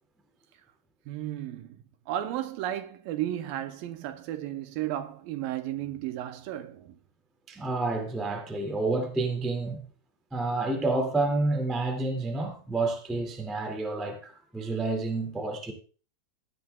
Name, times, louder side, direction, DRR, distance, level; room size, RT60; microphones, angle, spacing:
voice 1, 1.1-1.8 2.1-7.0, right 12 dB, 80° right, 2.2 m, -34 dB
voice 2, 7.5-9.8 10.3-15.7, right 2 dB, ahead, 0.4 m, -29 dB
17.0 x 10.5 x 2.3 m
omnidirectional pair, 4.4 m